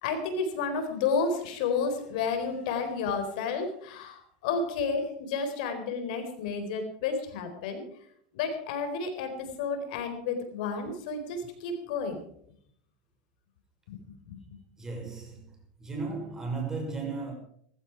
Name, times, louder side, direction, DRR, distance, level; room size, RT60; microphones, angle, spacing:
voice 1, 0.0-7.8 8.3-12.2 13.9-14.0 14.3-14.4, left 5 dB, 75° left, 4.4 m, -31 dB
voice 2, 14.8-15.5 15.8-17.3, right 4 dB, 10° right, 6.1 m, -35 dB
15.5 x 15.0 x 4.8 m
supercardioid pair, 130°, 4 cm